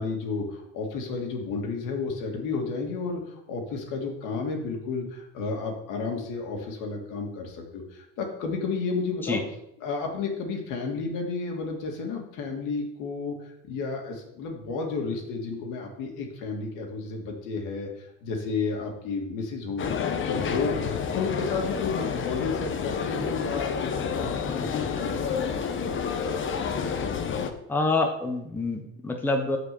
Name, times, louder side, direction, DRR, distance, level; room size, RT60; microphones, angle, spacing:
voice 1, 0.0-9.4 9.8-20.0 20.3-20.8 21.1-25.9, left 4 dB, 60° left, 2 dB, 2.5 m, -32 dB
sound 1, 19.8-27.5, left 6 dB, 35° left, 1.1 m, -29 dB
voice 2, 27.7-29.6, left 3 dB, 5° left, 3 dB, 1.0 m, -26 dB
6.6 x 5.1 x 7.0 m, 0.80 s
supercardioid pair, 110°, 36 cm